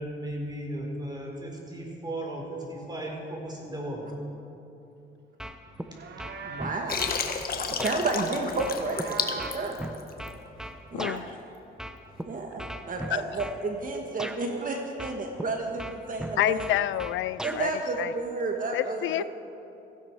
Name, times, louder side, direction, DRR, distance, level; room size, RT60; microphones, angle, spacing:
voice 1, 0.0-4.1, right 1 dB, 20° right, -1 dB, 4.3 m, -36 dB
sound 1, 5.4-5.9 6.2-7.2 7.8-8.0 8.6-11.2 11.8-12.2 12.6-13.6 14.2-14.4 15.0-15.5 15.8-17.6, equal, 5° right, 0.9 m, -37 dB
Livestock farm animals working animals, 5.7-6.9 8.2-9.7, right 5 dB, 60° right, 1.5 m, -41 dB
voice 2, 6.4-7.0 7.7-9.8 10.9-11.3 12.2-16.7 17.4-19.2, right 3 dB, 45° right, 2 dB, 1.7 m, -31 dB
Water, 6.9-10.3, left 5 dB, 50° left, 1.5 m, -31 dB
voice 3, 10.9-11.3 16.4-17.7 18.0-18.1 18.7-19.2, left 13 dB, 75° left, 17 dB, 0.4 m, -28 dB
17.0 x 15.5 x 4.7 m, 2.9 s
cardioid pair, 90°, 20 cm